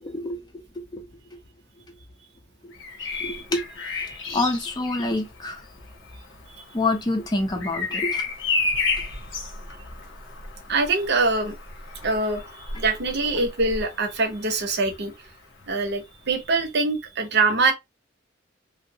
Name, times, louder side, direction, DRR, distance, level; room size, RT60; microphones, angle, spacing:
voice 1, 0.0-1.1 2.6-2.7 3.0-5.7 6.7-8.2, left 2 dB, 20° left, 0.5 m, -28 dB
Bird vocalization bird call bird song, 2.7-14.5 16.2-16.5, left 3 dB, 80° left, 0.9 m, -32 dB
voice 2, 10.7-11.5 12.0-15.1 15.7-17.7, right 3 dB, 60° right, 0.7 m, -24 dB
2.7 x 2.0 x 2.6 m
head